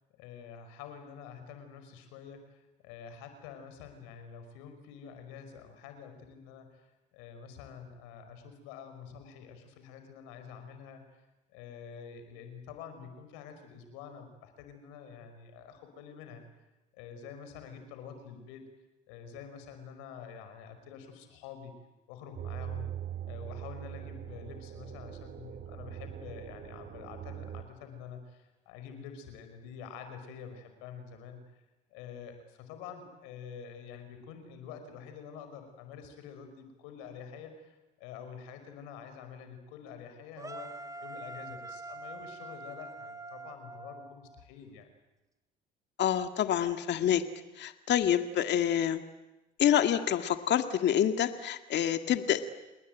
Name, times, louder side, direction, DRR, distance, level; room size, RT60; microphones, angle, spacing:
voice 1, 0.1-11.1 11.5-16.5 16.9-18.7 19.1-21.7 22.1-22.9 23.2-31.6 31.9-40.7 41.0-44.9, left 7 dB, 85° left, 7 dB, 5.4 m, -47 dB
sound 1, 22.4-27.6, right 10 dB, 50° right, 3.1 m, -41 dB
sound 2, 40.4-44.5, right 2 dB, 15° right, 3.0 m, -44 dB
voice 2, 46.0-47.2 47.6-49.0 49.6-52.4, left 10 dB, 60° left, 8 dB, 2.0 m, -27 dB
30.0 x 20.5 x 9.2 m, 1.0 s
supercardioid pair, 80°, 21 cm